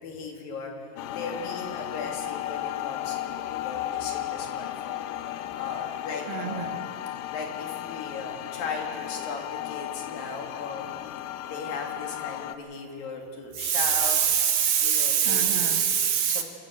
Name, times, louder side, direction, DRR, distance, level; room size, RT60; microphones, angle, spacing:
voice 1, 0.0-5.1 5.6-6.7 7.3-10.9 11.5-14.2 14.8-15.7 16.3-16.4, left 4 dB, 60° left, 1 dB, 3.7 m, -37 dB
sound 1, 1.0-12.6, left 14 dB, 80° left, 2.3 m, -34 dB
voice 2, 6.3-6.9 13.6-16.4, right 8 dB, 80° right, 8 dB, 2.2 m, -24 dB
28.0 x 12.5 x 7.6 m, 2.4 s
omnidirectional pair, 4.8 m